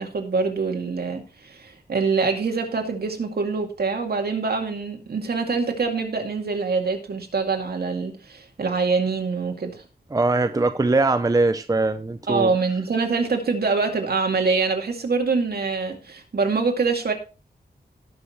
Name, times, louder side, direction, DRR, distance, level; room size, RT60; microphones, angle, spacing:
voice 1, 0.0-9.8 12.3-17.1, right 4 dB, 70° right, 2.3 m, -24 dB
voice 2, 10.1-12.5, right 3 dB, 20° right, 0.6 m, -21 dB
18.5 x 6.2 x 3.1 m
wide cardioid pair, 125°, 17 cm